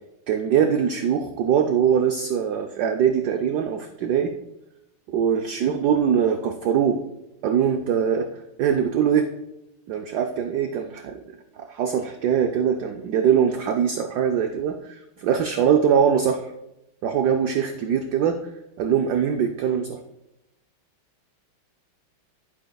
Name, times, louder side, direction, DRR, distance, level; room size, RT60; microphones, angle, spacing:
voice 1, 0.3-4.3 5.1-7.0 7.4-8.3 8.6-9.3 9.9-11.2 11.6-16.4 17.0-18.4 18.8-20.0, right 8 dB, 75° right, 5 dB, 0.9 m, -22 dB
11.5 x 9.5 x 2.3 m, 0.90 s
omnidirectional pair, 2.3 m